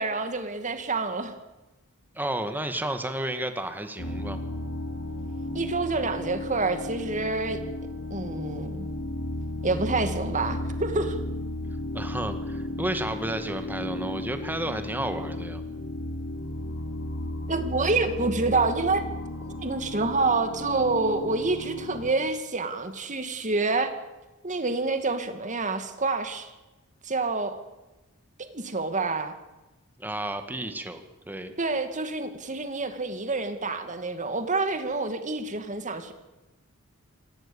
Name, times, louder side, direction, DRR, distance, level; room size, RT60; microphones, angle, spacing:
voice 1, 0.0-1.3 5.5-7.6 8.1-8.9 9.6-11.2 17.5-19.0 19.4-23.9 24.4-26.5 27.0-27.6 28.4-29.3 31.6-36.1, right 3 dB, 35° right, 8 dB, 2.3 m, -27 dB
voice 2, 2.2-4.4 11.9-15.6 30.0-31.0 31.3-31.5, right 1 dB, 10° right, 7 dB, 1.9 m, -32 dB
sound 1, 4.0-22.1, left 1 dB, 55° left, 6.5 m, -34 dB
27.0 x 18.5 x 7.2 m, 1.1 s
head